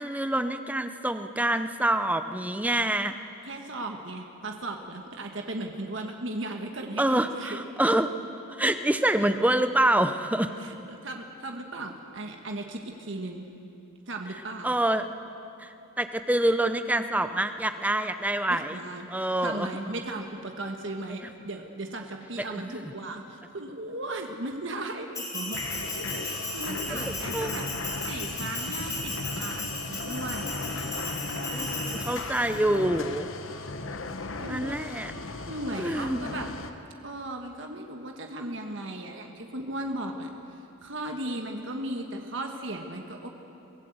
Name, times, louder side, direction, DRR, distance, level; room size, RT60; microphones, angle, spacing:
voice 1, 0.0-3.2 7.0-8.1 8.5-10.5 14.6-15.1 15.6-18.8 19.1-19.7 22.5-22.8 26.9-27.6 31.5-33.3 34.5-35.1 35.8-36.4, right 1 dB, 5° right, 9 dB, 0.7 m, -26 dB
voice 2, 3.4-7.6 10.6-13.4 14.1-14.8 18.5-25.6 26.1-27.7 27.9-30.5 34.4-34.8 35.5-36.5 37.0-43.3, right 1 dB, 60° right, 3 dB, 1.5 m, -36 dB
Bell, 25.1-32.6, left 1 dB, 15° left, 3.8 m, -36 dB
sound 1, 25.5-36.7, left 3 dB, 70° left, 1.1 m, -36 dB
23.5 x 16.0 x 8.0 m, 2.9 s
head